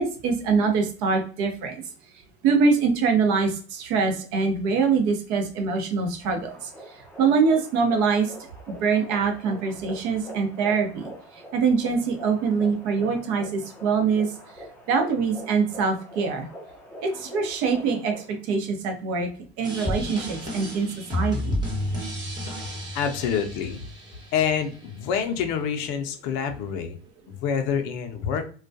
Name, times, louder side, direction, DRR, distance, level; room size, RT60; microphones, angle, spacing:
voice 1, 0.0-1.8 2.4-6.5 7.2-8.3 8.8-11.1 11.5-14.3 14.9-16.5 17.0-19.3 19.6-20.9 21.1-21.6, right 5 dB, 50° right, 4 dB, 0.8 m, -24 dB
sound 1, 6.2-18.4, equal, 5° left, 0.5 m, -44 dB
sound 2, 19.6-24.6, left 1 dB, 10° right, 1.0 m, -31 dB
voice 2, 22.9-23.9 24.3-27.0 27.3-28.4, left 7 dB, 50° left, 7 dB, 0.6 m, -27 dB
2.3 x 2.2 x 2.5 m, 0.41 s
hypercardioid pair, 100°, 36 cm